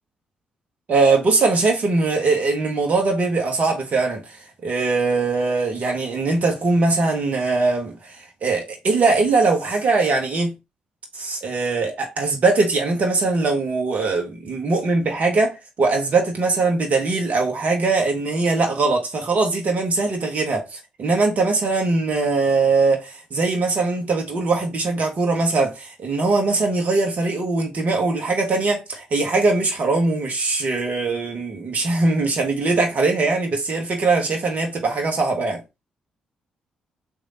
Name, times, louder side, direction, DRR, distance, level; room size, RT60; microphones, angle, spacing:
voice 1, 0.9-4.4 4.6-10.5 11.1-35.6, right 3 dB, 50° right, 1.1 m, -21 dB
3.2 x 2.7 x 3.8 m
hypercardioid pair, 40°, 3 cm